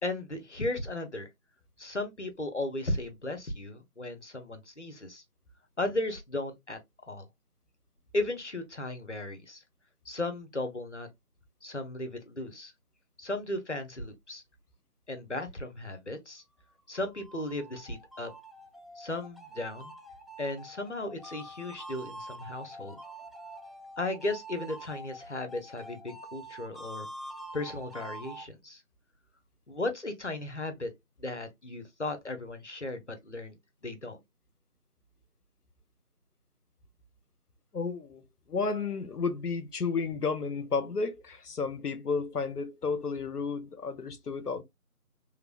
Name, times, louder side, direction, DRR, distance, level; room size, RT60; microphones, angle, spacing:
voice 1, 0.0-1.3 1.8-5.2 5.8-6.8 7.1-7.3 8.1-9.6 10.1-11.1 11.6-12.7 13.2-14.4 15.1-16.4 16.9-18.3 19.0-19.9 20.4-23.0 24.0-27.1 27.5-28.8 29.7-30.9 31.2-33.6 33.8-34.2, left 2 dB, 50° left, 0.6 m, -35 dB
sound 1, 16.7-28.5, right 1 dB, ahead, 0.4 m, -46 dB
voice 2, 37.7-38.2 38.5-44.6, left 4 dB, 90° left, 0.7 m, -32 dB
3.0 x 2.1 x 2.2 m
figure-of-eight pair, 175°, 45 cm